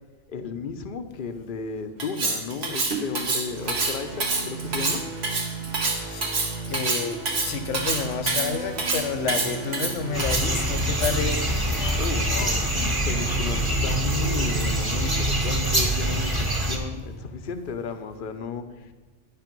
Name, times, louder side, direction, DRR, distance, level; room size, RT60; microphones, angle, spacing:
voice 1, 0.3-5.0 12.0-18.9, left 5 dB, 50° left, 0.8 m, -34 dB
Cutlery silverware, 2.0-11.3, right 3 dB, 60° right, 1.5 m, -27 dB
sound 1, 3.5-15.2, right 4 dB, 40° right, 1.0 m, -36 dB
voice 2, 6.7-7.2 7.5-11.4, left 6 dB, 85° left, 1.0 m, -29 dB
sound 2, 10.1-16.8, right 1 dB, 20° right, 1.2 m, -25 dB
9.9 x 5.8 x 5.2 m
omnidirectional pair, 1.2 m